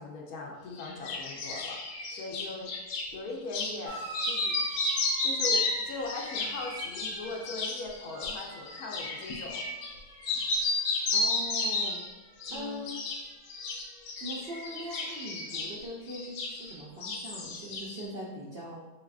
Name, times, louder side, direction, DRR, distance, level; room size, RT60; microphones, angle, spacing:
voice 1, 0.0-1.8 2.1-2.7 3.1-4.9 5.2-9.6 12.5-12.9, left 3 dB, 70° left, -1 dB, 1.1 m, -40 dB
sound 1, 0.8-3.1 3.5-3.8 4.1-10.0 10.2-12.1 12.4-13.2 13.5-16.8 17.0-18.0, left 3 dB, 85° left, 1.3 m, -32 dB
sound 2, 3.8-12.9 13.1-13.9 15.0-15.1, right 1 dB, 90° right, 1.7 m, -47 dB
voice 2, 11.1-12.0 12.5-13.0 14.2-18.8, equal, 60° right, -6 dB, 0.6 m, -41 dB
4.8 x 3.5 x 2.3 m, 1.2 s
omnidirectional pair, 1.8 m